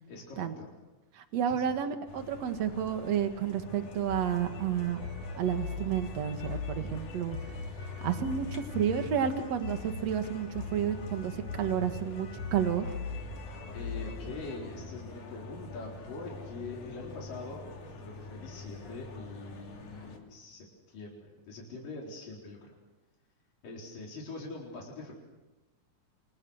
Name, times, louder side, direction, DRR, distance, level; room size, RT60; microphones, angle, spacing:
voice 1, 0.1-0.8 1.5-1.8 13.7-22.7 23.6-25.1, left 3 dB, 85° left, -2 dB, 6.0 m, -43 dB
voice 2, 1.1-5.0 5.4-7.4 8.0-12.9, right 9 dB, 55° right, 7 dB, 2.8 m, -31 dB
sound 1, 2.1-20.2, left 4 dB, 70° left, 4.5 m, -41 dB
28.5 x 27.5 x 6.6 m, 1.1 s
omnidirectional pair, 3.7 m